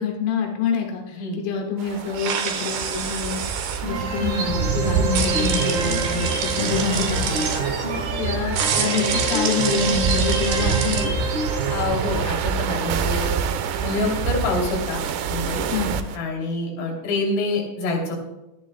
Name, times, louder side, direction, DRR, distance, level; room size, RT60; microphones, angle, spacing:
voice 1, 0.0-3.4 3.8-11.1 15.7-16.0, left 6 dB, 90° left, 1 dB, 4.1 m, -27 dB
sound 1, 1.8-16.2, right 7 dB, 80° right, 2.6 m, -27 dB
sound 2, 2.1-3.8 5.1-7.6 8.5-11.1, right 6 dB, 65° right, 2.7 m, -27 dB
sound 3, 3.8-11.8, right 2 dB, 45° right, 3.1 m, -26 dB
voice 2, 11.7-13.3 13.8-15.0 15.3-15.6 16.1-18.2, left 2 dB, 55° left, -1 dB, 4.4 m, -26 dB
24.5 x 10.5 x 2.2 m, 0.97 s
omnidirectional pair, 5.8 m